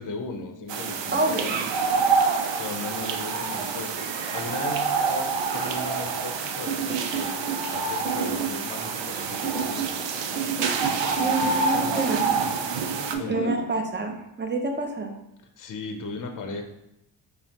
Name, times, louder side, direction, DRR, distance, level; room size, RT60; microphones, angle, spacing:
voice 1, 0.0-1.6 2.6-10.0 11.0-11.5 13.1-13.5 15.6-16.6, left 4 dB, 40° left, 5 dB, 0.6 m, -37 dB
sound 1, 0.7-13.2, right 5 dB, 60° right, 0.6 m, -27 dB
voice 2, 1.1-1.5 11.2-12.3 13.3-15.1, right 2 dB, 20° right, 3 dB, 0.7 m, -28 dB
sound 2, 6.7-7.7 8.0-8.6 9.4-10.0 10.4-11.4 11.7-12.3 13.1-13.6, right 7 dB, ahead, 1.1 m, -30 dB
5.4 x 2.1 x 2.8 m, 0.84 s
cardioid pair, 55°, 49 cm